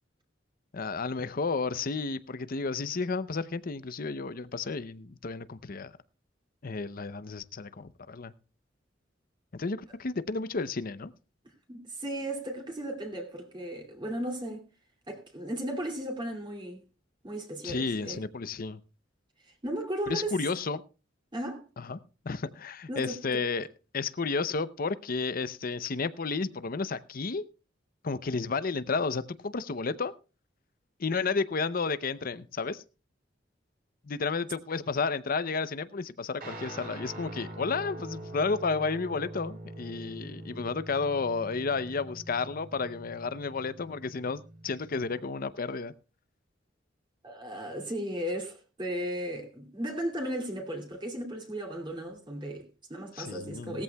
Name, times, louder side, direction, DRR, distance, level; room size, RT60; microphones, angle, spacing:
voice 1, 0.7-5.9 6.6-8.3 9.5-11.1 17.6-18.8 20.1-20.8 21.8-22.0 22.2-23.7 23.9-27.4 28.0-30.1 31.0-32.8 34.0-45.9 53.2-53.8, left 4 dB, 50° left, 0.7 m, -32 dB
voice 2, 11.7-14.6 15.1-16.8 17.2-18.2 19.4-20.4 21.3-21.7 22.9-23.4 47.2-53.8, right 1 dB, 25° right, 2.6 m, -35 dB
Guitar, 36.4-45.2, right 1 dB, 55° right, 3.4 m, -44 dB
18.5 x 14.0 x 2.3 m
head